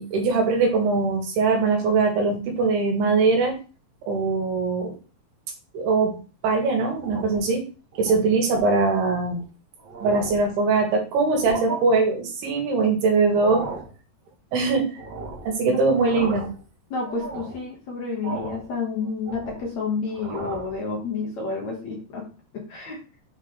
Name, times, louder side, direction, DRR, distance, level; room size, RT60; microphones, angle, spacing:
voice 1, 0.0-3.6 4.1-5.0 5.7-6.1 6.4-7.6 8.0-9.4 10.0-13.6 14.5-15.0 15.5-16.5, right 4 dB, 85° right, 2 dB, 3.7 m, -21 dB
sound 1, 6.9-7.5 7.9-8.1 8.5-8.8 9.4-9.5 9.8-10.5 11.2-11.8 13.2-13.9 15.0-15.5 15.9-16.6 17.0-17.6 18.2-18.7 19.0-19.7 20.1-20.7, right 4 dB, 50° right, 1.5 m, -35 dB
voice 2, 16.9-22.2 22.5-23.0, left 4 dB, 55° left, -1 dB, 2.4 m, -30 dB
7.9 x 4.8 x 3.3 m, 0.35 s
omnidirectional pair, 4.5 m